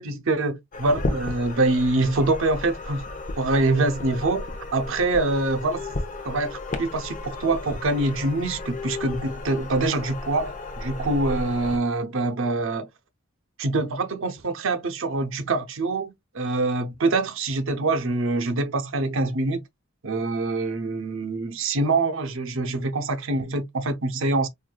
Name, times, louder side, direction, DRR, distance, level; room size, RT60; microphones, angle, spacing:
voice 1, 0.0-3.1 3.4-4.5 4.7-5.8 6.2-12.9 13.6-19.6 20.0-24.5, right 2 dB, 65° right, 0.7 m, -25 dB
sound 1, 0.7-11.8, left 2 dB, 40° left, 0.7 m, -34 dB
4.6 x 2.5 x 2.2 m
head